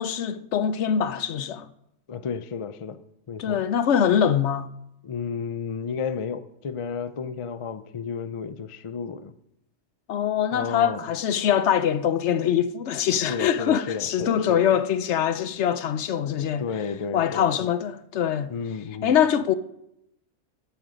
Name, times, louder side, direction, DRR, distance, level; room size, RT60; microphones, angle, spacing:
voice 1, 0.0-1.7 3.4-4.7 10.1-16.6 17.1-18.5 19.0-19.5, left 9 dB, 65° left, 0.9 m, -23 dB
voice 2, 2.1-3.0 3.3-3.6 5.0-9.4 10.5-11.0 13.3-14.7 16.6-17.7 18.5-19.2, left 6 dB, 45° left, 0.4 m, -32 dB
15.0 x 8.0 x 5.1 m
omnidirectional pair, 1.3 m